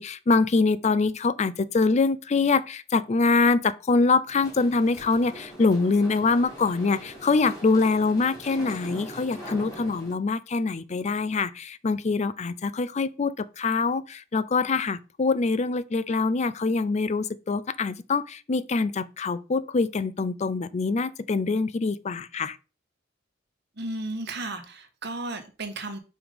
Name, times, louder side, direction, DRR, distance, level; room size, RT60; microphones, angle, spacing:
voice 1, 0.0-22.6, left 4 dB, 35° left, 0.4 m, -24 dB
sound 1, 4.3-10.1, equal, 20° left, 2.9 m, -42 dB
voice 2, 23.8-26.0, right 2 dB, 60° right, 1.2 m, -34 dB
5.5 x 4.9 x 5.1 m
head